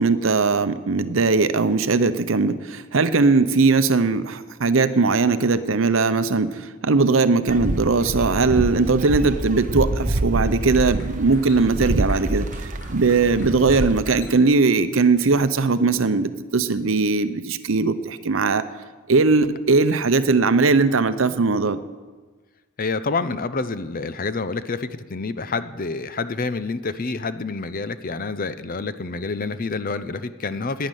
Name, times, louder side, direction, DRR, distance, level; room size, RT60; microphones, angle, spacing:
voice 1, 0.0-12.5 12.9-18.6 19.1-21.8, right 4 dB, 70° right, 12 dB, 0.8 m, -19 dB
sound 1, 7.5-14.0, right 1 dB, 40° right, 0.9 m, -27 dB
sound 2, 10.6-16.0, left 2 dB, 90° left, 4.3 m, -47 dB
voice 2, 22.8-30.9, left 3 dB, 45° left, 13 dB, 0.7 m, -28 dB
11.5 x 10.0 x 9.3 m, 1.4 s
head